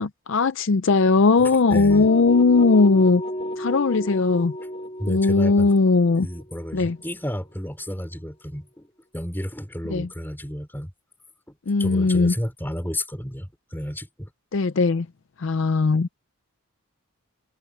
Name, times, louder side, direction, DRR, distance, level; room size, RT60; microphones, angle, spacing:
voice 1, 0.0-3.2 3.6-4.5 5.1-6.3 6.7-7.0 9.9-10.1 11.7-12.3 14.5-15.1 15.4-16.1, left 3 dB, 55° left, 0.5 m, -19 dB
voice 2, 1.4-2.1 5.0-5.7 6.2-10.9 11.5-14.3, equal, 10° left, 4.1 m, -32 dB
sound 1, 1.9-7.8, equal, 30° left, 1.8 m, -33 dB
head